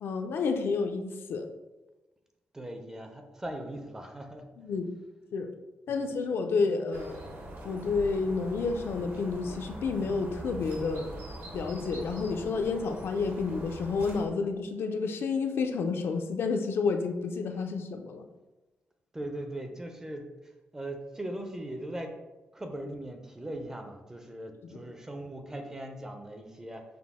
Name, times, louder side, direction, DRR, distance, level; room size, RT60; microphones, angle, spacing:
voice 1, 0.0-1.5 4.6-4.9 5.3-5.5 5.9-7.2 7.6-11.1 11.5-18.3, left 4 dB, 70° left, 5 dB, 0.4 m, -30 dB
voice 2, 2.5-4.4 5.9-6.0 19.1-22.1 22.5-26.8, right 1 dB, 15° right, 4 dB, 0.4 m, -39 dB
sound 1, 6.9-14.3, right 1 dB, 55° right, 0.8 m, -43 dB
5.8 x 2.0 x 3.5 m, 1.1 s
wide cardioid pair, 150°, 4 cm